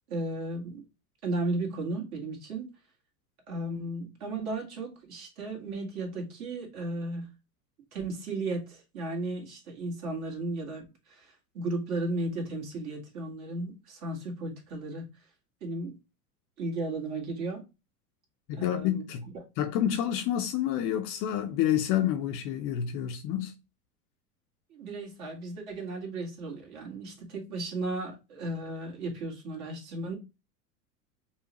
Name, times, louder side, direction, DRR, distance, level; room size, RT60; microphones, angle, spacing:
voice 1, 0.1-0.8 1.2-2.7 3.5-7.3 7.9-15.1 15.6-16.0 16.6-17.7 18.5-19.0 19.3-19.4 24.7-30.2, right 2 dB, 65° right, 1.8 m, -35 dB
voice 2, 18.5-19.3 19.6-23.5, left 10 dB, 30° left, 0.4 m, -28 dB
5.3 x 2.1 x 2.9 m
hypercardioid pair, 95°, 47 cm